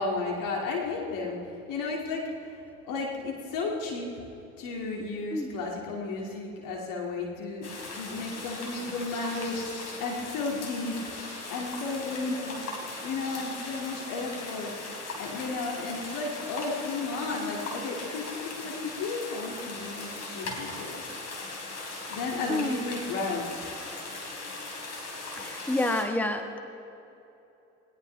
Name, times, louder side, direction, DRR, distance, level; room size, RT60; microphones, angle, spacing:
voice 1, 0.0-4.1 4.6-11.0 11.5-14.7 15.2-21.1 22.1-23.4, left 3 dB, 60° left, -1 dB, 2.4 m, -33 dB
sound 1, 7.6-26.0, left 2 dB, 45° left, 3.8 m, -39 dB
voice 2, 25.4-26.6, left 1 dB, 5° left, 6 dB, 1.3 m, -28 dB
20.0 x 19.0 x 3.4 m, 2.9 s
hypercardioid pair, 70°, 36 cm